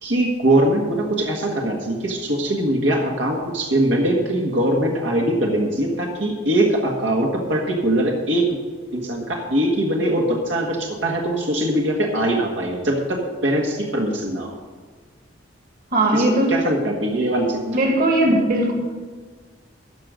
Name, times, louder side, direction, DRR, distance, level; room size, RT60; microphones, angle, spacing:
voice 1, 0.0-8.6 8.9-14.5 16.1-17.6, right 1 dB, 80° right, -1 dB, 1.7 m, -22 dB
voice 2, 15.9-16.5 17.7-18.7, right 1 dB, 50° right, 1 dB, 2.1 m, -18 dB
14.0 x 5.2 x 8.2 m, 1.5 s
head